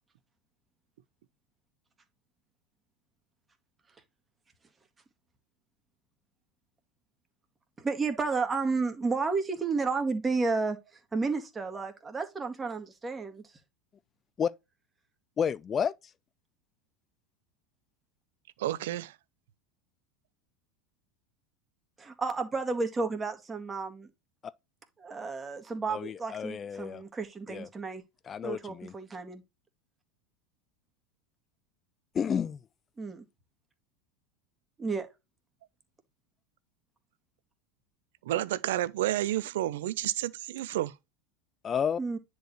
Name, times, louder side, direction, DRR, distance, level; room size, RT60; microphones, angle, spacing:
voice 1, 7.8-10.8 11.1-13.4 22.0-24.1 25.0-28.0 28.4-29.4 33.0-33.2 34.8-35.1 42.0-42.2, right 4 dB, 20° right, 2.1 m, -32 dB
voice 2, 15.4-15.9 24.4-24.5 25.9-27.0 27.5-27.7 28.2-28.9 32.1-32.6 41.6-42.0, left 7 dB, 30° left, 0.6 m, -31 dB
voice 3, 18.6-19.2 38.2-40.9, right 14 dB, 65° right, 0.6 m, -30 dB
10.0 x 4.7 x 3.1 m
hypercardioid pair, 85°, 0 cm